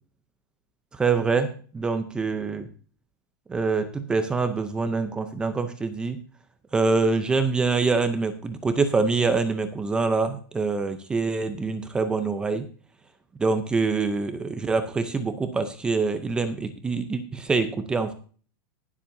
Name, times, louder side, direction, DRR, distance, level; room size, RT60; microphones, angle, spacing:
voice 1, 0.9-2.7 3.5-6.2 6.7-12.7 13.4-18.1, right 4 dB, 5° right, 8 dB, 0.6 m, -25 dB
19.5 x 7.4 x 2.7 m, 0.40 s
supercardioid pair, 180°, 11 cm